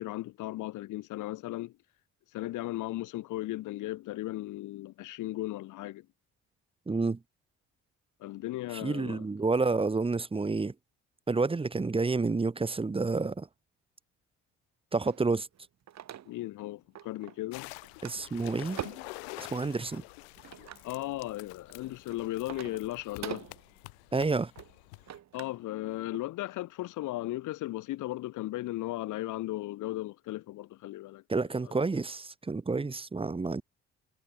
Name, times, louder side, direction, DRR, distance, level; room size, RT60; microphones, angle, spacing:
voice 1, 0.0-1.7 2.3-6.1 8.2-9.2 16.2-17.7 20.8-23.5 25.3-31.2 31.6-31.8, left 16 dB, 70° left, 1.6 m, -36 dB
voice 2, 6.9-7.2 8.8-10.7 11.3-13.5 14.9-15.5 18.0-18.8 19.4-20.0 24.1-24.5 31.3-33.6, right 3 dB, 15° right, 1.0 m, -29 dB
sound 1, 15.0-16.6 17.0-17.5 17.8-19.2 19.9-20.9 21.5-25.6 26.0-26.2, right 10 dB, 60° right, 3.1 m, -44 dB
sound 2, 17.5-25.2, left 36 dB, 90° left, 2.3 m, -48 dB
supercardioid pair, 70°, 31 cm